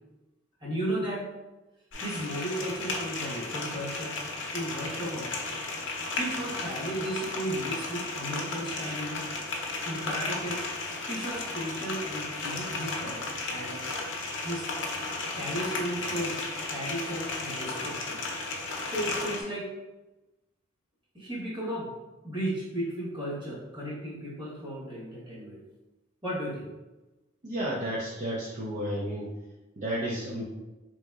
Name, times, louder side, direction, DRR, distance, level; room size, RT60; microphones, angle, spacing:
voice 1, 0.6-1.3 2.0-4.2 4.5-5.4 6.1-9.3 9.8-10.6 11.1-13.8 14.4-14.7 15.3-16.4 16.7-18.2 18.8-19.7 21.1-21.9 22.2-25.6 26.2-26.7, right 1 dB, 25° right, -7 dB, 1.2 m, -34 dB
sound 1, 1.9-19.4, left 3 dB, 70° left, 0.6 m, -34 dB
voice 2, 27.4-29.3 29.8-30.4, right 1 dB, 40° right, -6 dB, 0.5 m, -32 dB
3.6 x 2.9 x 2.3 m, 1.1 s
head